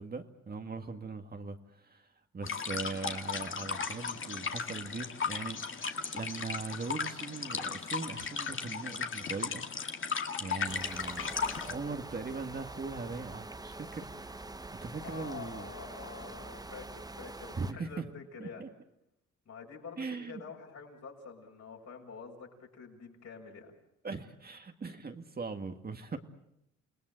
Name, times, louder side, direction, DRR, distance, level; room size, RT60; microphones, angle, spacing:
voice 1, 0.0-9.6 10.4-11.4 11.6-14.6 14.8-15.7 17.5-18.1 18.4-18.7 20.0-20.4 24.0-26.2, right 4 dB, 30° right, 5 dB, 1.9 m, -40 dB
sound 1, 2.4-11.7, left 5 dB, 40° left, 2.2 m, -36 dB
sound 2, 10.7-17.7, right 2 dB, 10° right, 1.1 m, -45 dB
voice 2, 15.0-18.6 19.4-23.7, left 5 dB, 60° left, 1 dB, 6.6 m, -47 dB
29.0 x 19.0 x 7.7 m, 0.81 s
cardioid pair, 90°, 30 cm